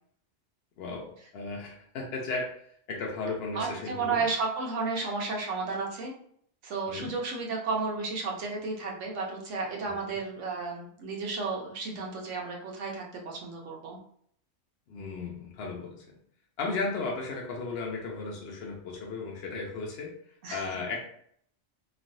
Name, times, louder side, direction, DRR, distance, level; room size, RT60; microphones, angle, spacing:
voice 1, 0.8-2.5 2.9-4.2 6.9-7.1 9.9-10.2 14.9-16.0 16.6-20.1 20.5-21.0, left 3 dB, 60° left, -1 dB, 0.8 m, -35 dB
voice 2, 3.5-6.1 6.6-14.0 20.4-20.6, right 4 dB, 80° right, 0 dB, 1.1 m, -33 dB
3.0 x 2.5 x 2.6 m, 0.64 s
omnidirectional pair, 1.2 m